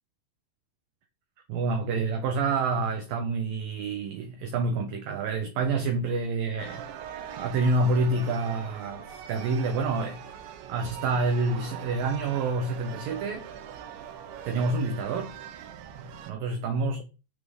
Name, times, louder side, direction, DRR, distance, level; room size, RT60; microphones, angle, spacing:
voice 1, 1.5-6.9 7.4-10.2 10.7-13.5 14.4-15.3 16.0-17.0, right 3 dB, 65° right, 2.6 m, -28 dB
sound 1, 6.6-16.3, right 9 dB, 85° right, 3.6 m, -42 dB
9.1 x 6.1 x 7.9 m
omnidirectional pair, 5.2 m